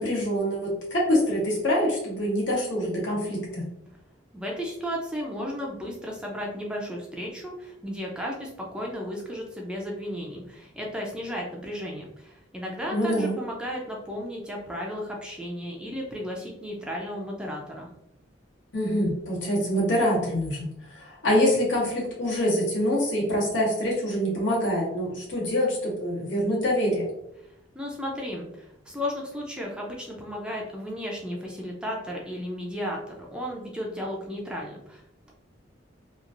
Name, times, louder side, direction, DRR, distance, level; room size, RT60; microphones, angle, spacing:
voice 1, 0.0-3.7 12.9-13.3 18.7-27.1, equal, 75° left, -4 dB, 1.1 m, -25 dB
voice 2, 4.3-17.9 27.4-35.3, equal, 5° right, -2 dB, 0.4 m, -34 dB
3.0 x 2.5 x 2.4 m, 0.81 s
head